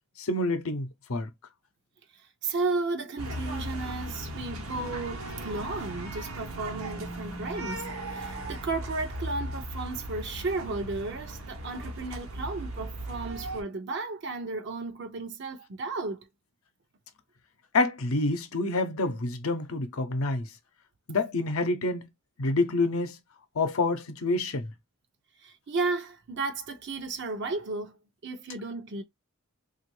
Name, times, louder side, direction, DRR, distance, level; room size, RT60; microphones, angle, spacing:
voice 1, 0.2-1.3 17.7-20.5 21.1-22.0 22.4-23.2 23.6-24.7, left 2 dB, 85° left, 0.7 m, -27 dB
voice 2, 2.4-16.2 25.4-28.0 28.2-29.0, right 3 dB, 55° right, 0.5 m, -34 dB
sound 1, 3.2-13.6, right 1 dB, 85° right, 1.0 m, -37 dB
2.9 x 2.5 x 3.0 m
head